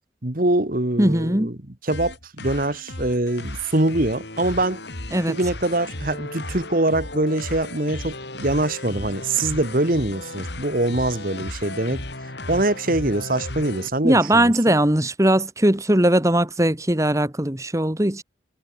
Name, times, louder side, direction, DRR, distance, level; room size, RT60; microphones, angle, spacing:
voice 1, 0.2-1.5 1.8-4.8 5.3-12.0 12.5-14.5, right 2 dB, 45° right, 1.7 m, -23 dB
voice 2, 1.0-1.5 5.1-5.3 14.0-18.2, right 1 dB, 15° right, 1.6 m, -19 dB
sound 1, 1.9-13.9, left 2 dB, 65° left, 4.6 m, -35 dB
head